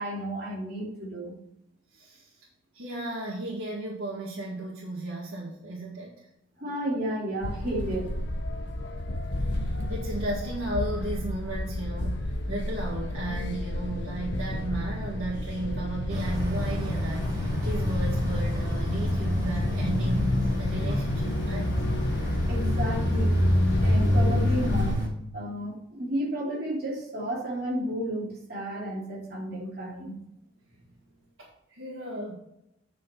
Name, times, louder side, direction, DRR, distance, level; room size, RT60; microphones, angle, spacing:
voice 1, 0.0-1.3 6.6-8.2 22.5-23.4 23.8-25.0 25.3-30.2, right 1 dB, 50° right, -4 dB, 2.9 m, -32 dB
voice 2, 1.9-2.5 2.7-6.3 9.5-20.3 20.6-21.8 31.4-32.4, right 1 dB, 75° right, -5 dB, 2.0 m, -35 dB
sound 1, 7.4-24.9, left 1 dB, 55° left, 0.9 m, -31 dB
sound 2, 16.1-25.1, left 1 dB, 20° right, 3.6 m, -27 dB
8.7 x 6.2 x 4.4 m, 0.81 s
head